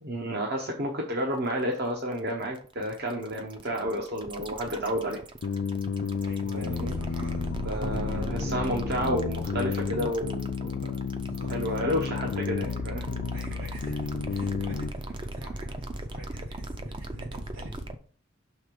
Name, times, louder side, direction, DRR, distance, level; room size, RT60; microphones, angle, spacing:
voice 1, 0.0-5.2 6.5-6.9 7.6-10.9 11.5-13.2, equal, 50° right, 1 dB, 0.9 m, -31 dB
sound 1, 1.3-18.0, right 1 dB, 25° right, 0.5 m, -38 dB
sound 2, 5.4-14.9, left 5 dB, 55° left, 0.4 m, -32 dB
voice 2, 6.2-8.5 11.1-11.6 13.3-17.9, right 1 dB, 80° right, -3 dB, 2.8 m, -47 dB
6.4 x 3.4 x 5.0 m, 0.43 s
head